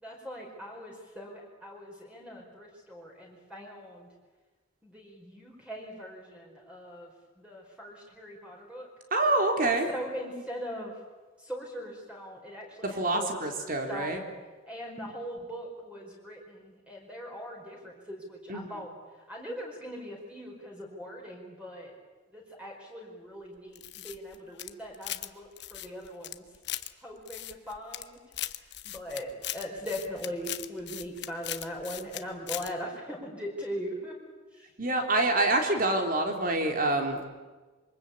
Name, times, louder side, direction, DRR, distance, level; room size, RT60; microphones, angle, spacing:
voice 1, 0.0-4.1 4.8-7.1 7.4-8.9 9.9-10.9 11.4-14.3 14.7-18.9 19.3-21.9 22.3-26.4 26.7-28.2 28.8-34.1 34.6-34.7, equal, 5° right, -1 dB, 4.9 m, -40 dB
voice 2, 9.1-9.9 12.8-14.2 18.5-18.8 34.8-37.3, right 2 dB, 45° right, 4 dB, 3.7 m, -27 dB
sound 1, 23.7-25.3 25.6-26.9 27.3-28.0 28.3-32.2 32.5-32.7, left 13 dB, 55° left, 1.1 m, -38 dB
26.5 x 24.0 x 8.6 m, 1.3 s
head